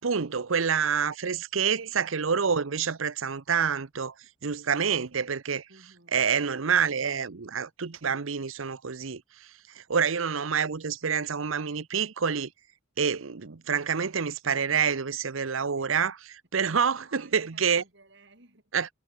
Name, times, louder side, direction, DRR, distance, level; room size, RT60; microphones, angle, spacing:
voice 1, 0.0-4.1 4.4-5.7 6.1-9.5 9.7-12.5 13.0-17.8 18.7-18.9, right 6 dB, 85° right, 0.8 m, -27 dB
voice 2, 5.7-6.2 15.8-15.9 16.6-18.7, right 2 dB, 60° right, 5.8 m, -57 dB
head